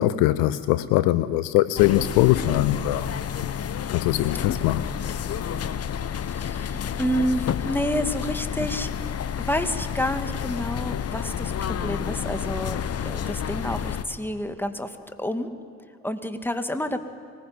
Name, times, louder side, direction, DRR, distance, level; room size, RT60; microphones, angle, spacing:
voice 1, 0.0-3.1 3.9-4.8, left 15 dB, 60° left, 15 dB, 0.8 m, -21 dB
sound 1, 1.7-14.0, left 8 dB, 40° left, 1.2 m, -30 dB
voice 2, 6.3-8.9 9.4-15.5 16.0-17.0, equal, 5° left, 8 dB, 2.1 m, -29 dB
24.0 x 20.0 x 9.5 m, 2.2 s
figure-of-eight pair, 45°, 38 cm